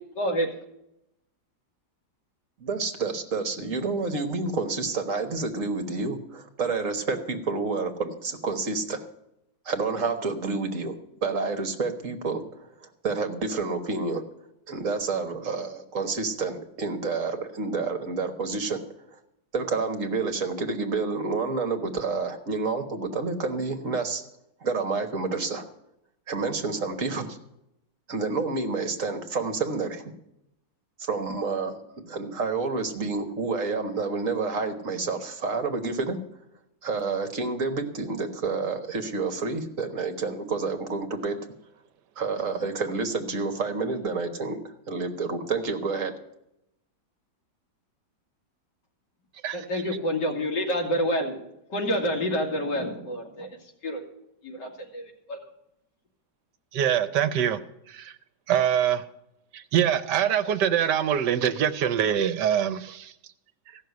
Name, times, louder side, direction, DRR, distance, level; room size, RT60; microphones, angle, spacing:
voice 1, 0.2-0.5 49.5-51.4 51.7-53.5 53.8-54.0 54.4-55.0 55.3-55.4, equal, 80° left, 3.0 m, -27 dB
voice 2, 2.6-9.0 9.6-10.9 11.2-14.2 14.7-18.8 19.1-19.2 19.5-24.2 24.6-25.6 26.3-27.4 28.1-30.1 31.0-31.8 32.0-36.2 36.8-41.4 42.2-46.1, right 4 dB, 50° right, 1.5 m, -29 dB
voice 3, 49.4-49.8 56.7-57.6 57.9-58.1 58.5-59.0 59.5-63.1, right 9 dB, 75° right, 1.4 m, -24 dB
15.5 x 6.4 x 9.4 m
omnidirectional pair, 1.9 m